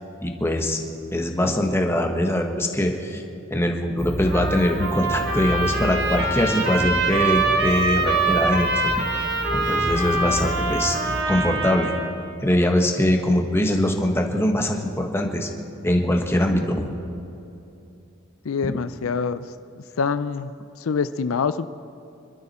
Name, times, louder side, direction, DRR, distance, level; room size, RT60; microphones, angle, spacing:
voice 1, 0.2-0.8 1.1-3.2 3.5-8.9 9.5-11.0 11.3-11.9 12.4-15.5 15.8-16.9, left 1 dB, 10° left, 3 dB, 1.3 m, -22 dB
sound 1, 4.0-11.2, right 1 dB, 10° right, 0.7 m, -32 dB
Trumpet, 4.3-12.1, right 2 dB, 55° right, 2.1 m, -24 dB
voice 2, 18.4-19.4 20.0-20.5 20.8-21.7, left 5 dB, 90° left, 13 dB, 0.5 m, -25 dB
26.0 x 12.5 x 4.3 m, 2.7 s
head